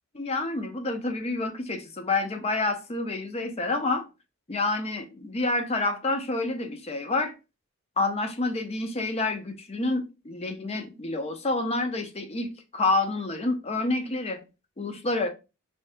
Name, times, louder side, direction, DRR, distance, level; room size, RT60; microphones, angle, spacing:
voice 1, 0.1-4.1 4.5-7.3 8.0-14.4 14.8-15.3, left 2 dB, 30° left, 0.6 m, -28 dB
3.2 x 2.7 x 3.4 m
head